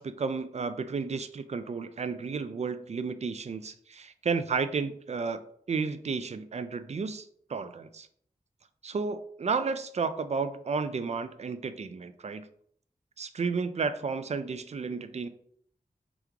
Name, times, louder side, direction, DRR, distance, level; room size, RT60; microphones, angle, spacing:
voice 1, 0.0-5.4 5.7-8.1 8.8-12.5 13.2-15.3, right 5 dB, 45° right, 11 dB, 0.4 m, -32 dB
3.4 x 3.0 x 3.7 m, 0.64 s
wide cardioid pair, 75°, 15 cm